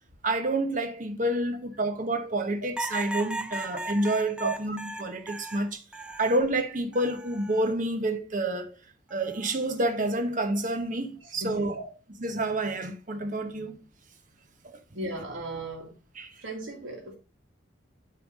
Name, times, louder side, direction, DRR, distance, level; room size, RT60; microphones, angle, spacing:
voice 1, 0.2-5.8 6.2-8.7 9.1-11.8 12.2-13.8 16.1-16.3, right 1 dB, 40° right, 1.0 m, -28 dB
sound 1, 2.8-6.5 6.9-7.7 9.1-9.5, right 1 dB, 5° right, 0.4 m, -37 dB
voice 2, 11.2-11.9 14.9-15.9 16.4-17.2, right 3 dB, 75° right, 1.8 m, -35 dB
8.9 x 3.4 x 4.9 m
head